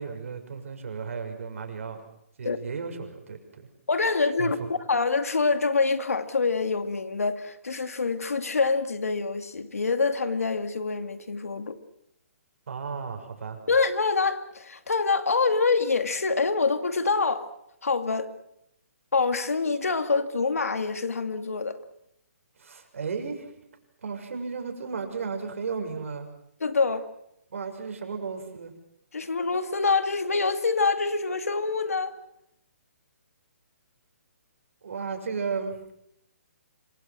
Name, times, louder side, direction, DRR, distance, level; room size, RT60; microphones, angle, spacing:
voice 1, 0.0-2.0 2.4-3.7 4.4-4.7 12.7-13.6 22.6-23.5 24.0-26.3 27.5-28.7 34.8-35.8, right 5 dB, 65° right, 6.5 m, -34 dB
voice 2, 3.9-11.8 13.7-17.5 17.8-18.3 19.1-21.8 26.6-27.1 29.1-32.1, left 4 dB, 85° left, 2.5 m, -26 dB
27.0 x 25.5 x 6.2 m
hypercardioid pair, 140°, 8 cm